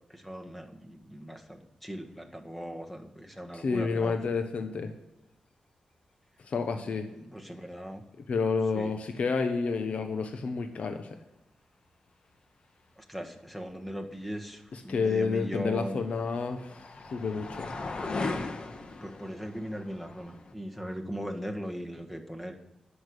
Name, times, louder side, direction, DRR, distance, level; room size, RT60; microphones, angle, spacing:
voice 1, 0.1-4.2 7.2-8.0 8.7-8.9 13.0-16.0 19.0-22.6, equal, 5° left, 3 dB, 1.6 m, -39 dB
voice 2, 3.5-4.9 6.5-7.1 8.3-11.2 14.7-17.7, left 4 dB, 65° left, 6 dB, 1.0 m, -30 dB
sound 1, 15.2-20.5, left 3 dB, 45° left, 1.4 m, -38 dB
10.5 x 7.0 x 6.6 m, 0.95 s
wide cardioid pair, 95°, 2 cm